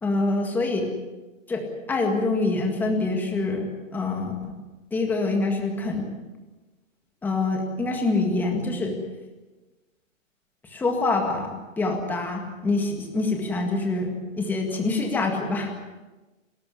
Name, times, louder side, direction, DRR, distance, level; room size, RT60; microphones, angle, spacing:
voice 1, 0.0-0.9 1.5-4.5 4.9-6.1 7.2-9.0 10.6-15.7, left 3 dB, 5° left, 2 dB, 1.9 m, -25 dB
29.5 x 14.0 x 9.8 m, 1.2 s
hypercardioid pair, 170°, 39 cm